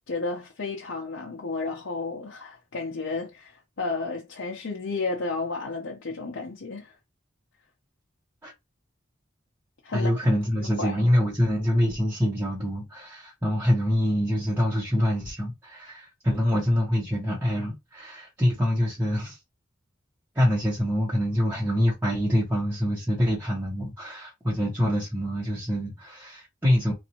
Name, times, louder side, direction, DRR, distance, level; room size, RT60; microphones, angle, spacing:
voice 1, 0.1-6.9 9.8-10.1 10.8-11.0, left 3 dB, 75° left, 0.8 m, -32 dB
voice 2, 9.9-19.4 20.3-26.9, equal, 10° right, 1.1 m, -25 dB
4.0 x 2.6 x 2.9 m
head